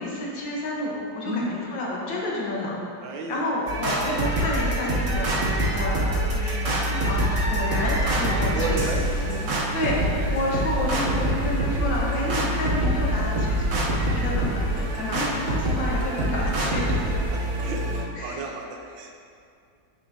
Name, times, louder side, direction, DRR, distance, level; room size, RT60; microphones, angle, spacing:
voice 1, 0.0-9.0 9.7-10.0 10.3-16.8 18.2-18.5, left 1 dB, 80° left, -4 dB, 2.0 m, -30 dB
voice 2, 3.0-3.4 7.5-7.7 8.5-9.8 12.2-12.3 14.2-14.3 15.0-15.1 17.3-19.1, right 2 dB, 90° right, 2 dB, 1.6 m, -33 dB
sound 1, 3.7-18.0, right 1 dB, 50° right, 1.1 m, -25 dB
9.5 x 6.7 x 2.8 m, 2.4 s
omnidirectional pair, 2.0 m